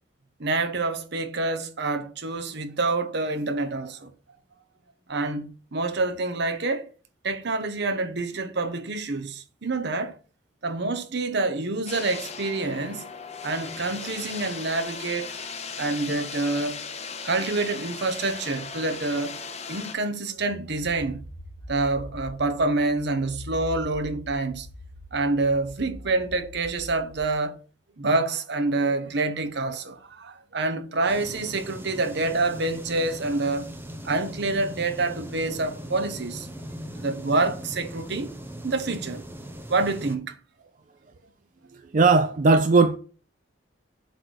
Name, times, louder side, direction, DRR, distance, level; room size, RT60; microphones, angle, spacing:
voice 1, 0.4-4.1 5.1-6.9 7.2-10.1 10.6-13.0 13.4-15.3 15.7-16.8 17.2-19.4 19.7-21.2 21.7-24.7 25.1-27.6 28.0-33.7 34.0-36.5 36.9-38.3 38.6-39.2 39.7-40.4, right 3 dB, 60° right, 0.9 m, -27 dB
sound 1, 11.9-20.0, left 5 dB, 35° left, 0.9 m, -37 dB
sound 2, 20.4-27.2, left 1 dB, 55° left, 2.0 m, -43 dB
sound 3, 31.1-40.2, equal, 10° right, 0.8 m, -39 dB
voice 2, 41.7-43.0, right 3 dB, 45° right, 0.5 m, -18 dB
7.9 x 3.3 x 6.1 m
head